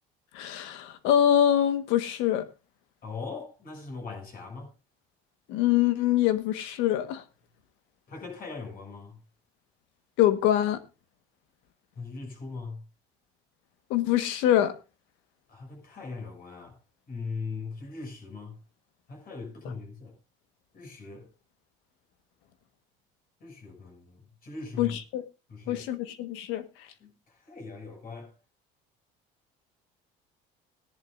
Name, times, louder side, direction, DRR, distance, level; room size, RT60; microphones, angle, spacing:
voice 1, 0.3-2.4 5.5-7.2 10.2-10.8 13.9-14.7 24.8-25.2 25.7-26.6, left 11 dB, 85° left, 1.4 m, -24 dB
voice 2, 3.0-4.7 8.1-9.2 11.9-12.8 15.5-16.8 17.1-18.6 19.1-20.2 20.7-21.3 23.4-25.0 25.5-25.9 27.0-28.3, left 4 dB, 50° left, 6.3 m, -40 dB
18.5 x 10.5 x 2.6 m
cardioid pair, 105°, 19 cm